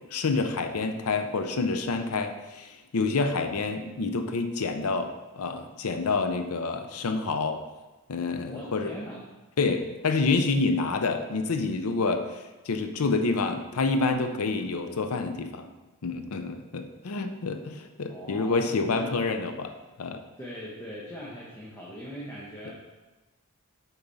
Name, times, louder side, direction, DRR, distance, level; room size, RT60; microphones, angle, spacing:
voice 1, 0.1-5.1 5.4-7.6 8.1-8.9 9.6-12.2 12.7-15.7 16.0-19.7 20.0-20.2 22.7-22.8, left 3 dB, 75° left, 7 dB, 0.6 m, -28 dB
voice 2, 8.5-9.3 18.1-19.3 20.4-22.7, equal, 10° left, -5 dB, 1.0 m, -41 dB
6.7 x 5.9 x 4.0 m, 1.1 s
head